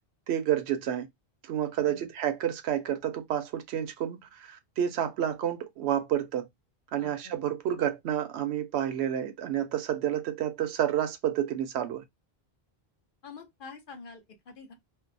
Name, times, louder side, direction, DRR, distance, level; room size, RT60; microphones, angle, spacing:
voice 1, 0.3-1.1 1.4-6.5 6.9-12.0, right 10 dB, 90° right, 0.8 m, -30 dB
voice 2, 1.8-2.1 7.0-7.4 13.2-14.7, left 4 dB, 60° left, 0.8 m, -47 dB
2.6 x 2.0 x 2.5 m
omnidirectional pair, 1.0 m